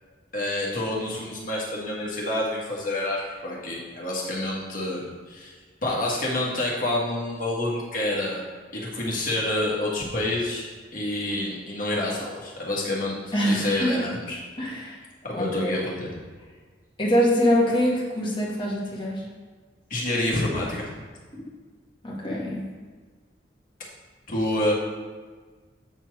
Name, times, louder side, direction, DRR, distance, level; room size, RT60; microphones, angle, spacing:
voice 1, 0.3-5.5 5.8-8.4 8.7-14.4 15.2-16.2 19.9-20.9 24.3-24.7, left 1 dB, 50° left, -4 dB, 1.7 m, -28 dB
voice 2, 13.3-14.0 14.6-15.0 15.3-15.7 17.0-19.2 22.0-22.7, equal, 30° left, -4 dB, 1.6 m, -24 dB
8.0 x 4.4 x 4.7 m, 1.4 s
head